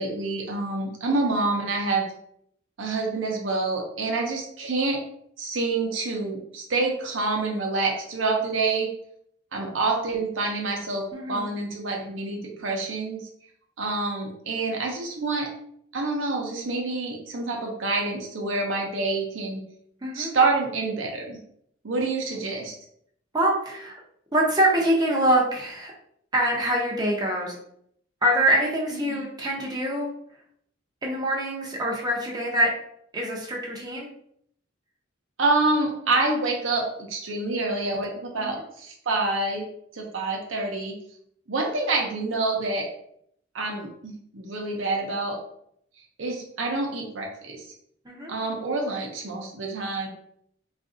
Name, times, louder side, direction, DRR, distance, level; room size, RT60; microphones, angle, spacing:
voice 1, 0.0-2.0 2.8-5.0 5.4-8.9 9.5-13.3 13.8-15.5 15.9-19.6 20.1-21.4 21.8-22.7 29.0-29.2 35.4-39.7 39.9-41.0 41.5-42.9 43.5-45.4 46.2-47.7 48.3-50.1, right 3 dB, 75° right, 1 dB, 0.7 m, -27 dB
voice 2, 11.1-11.4 20.0-20.3 23.3-23.9 24.3-25.9 26.3-27.6 28.2-30.1 31.0-32.7 33.1-34.1 38.4-38.6 48.0-48.3, right 1 dB, 20° right, -2 dB, 0.6 m, -24 dB
3.8 x 2.4 x 2.6 m, 0.69 s
head